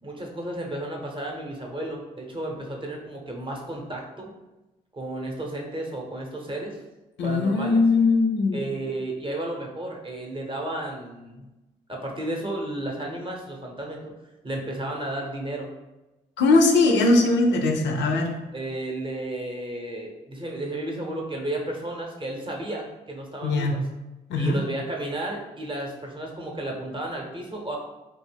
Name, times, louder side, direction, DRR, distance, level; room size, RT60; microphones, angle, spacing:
voice 1, 0.0-4.3 4.9-6.8 7.2-7.8 8.5-11.5 11.9-14.1 14.4-15.7 18.5-23.8 24.4-27.8, right 1 dB, 25° right, 0 dB, 0.7 m, -33 dB
voice 2, 7.2-8.6 16.4-18.3 23.4-23.8 24.3-24.6, left 3 dB, 75° left, 3 dB, 0.4 m, -20 dB
2.3 x 2.2 x 3.3 m, 1.0 s
supercardioid pair, 45°, 19 cm